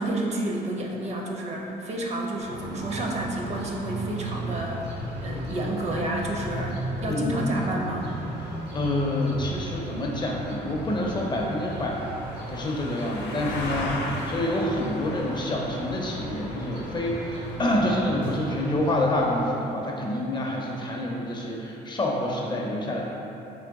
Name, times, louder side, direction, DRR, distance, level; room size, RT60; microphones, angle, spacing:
voice 1, 0.0-4.8 5.2-8.1, right 1 dB, 40° right, -1 dB, 0.5 m, -30 dB
sound 1, 2.4-19.5, right 1 dB, 80° right, 0.9 m, -36 dB
voice 2, 7.0-7.4 8.4-12.1 12.5-23.0, left 1 dB, 25° left, -2 dB, 0.5 m, -27 dB
sound 2, 10.0-17.6, left 2 dB, 80° left, 0.6 m, -38 dB
3.8 x 3.2 x 3.4 m, 2.9 s
cardioid pair, 130°, 17 cm